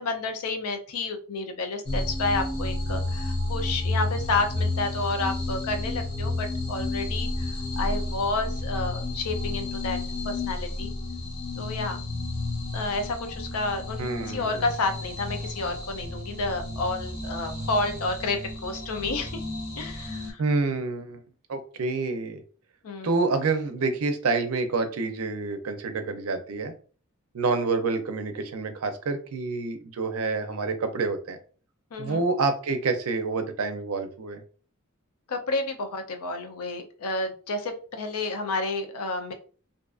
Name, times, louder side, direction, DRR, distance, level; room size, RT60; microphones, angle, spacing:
voice 1, 0.0-10.0 10.2-10.9 11.6-12.0 12.7-19.4 19.8-20.4 22.8-23.2 31.9-32.2 35.3-39.3, left 3 dB, 80° left, 6 dB, 0.5 m, -30 dB
sound 1, 1.9-20.3, left 2 dB, 45° left, 0.7 m, -31 dB
voice 2, 14.0-14.6 20.4-21.2 21.5-22.4 23.0-26.7 27.3-31.4 32.0-34.4, right 3 dB, 75° right, 8 dB, 0.5 m, -28 dB
2.5 x 2.3 x 2.4 m, 0.40 s
head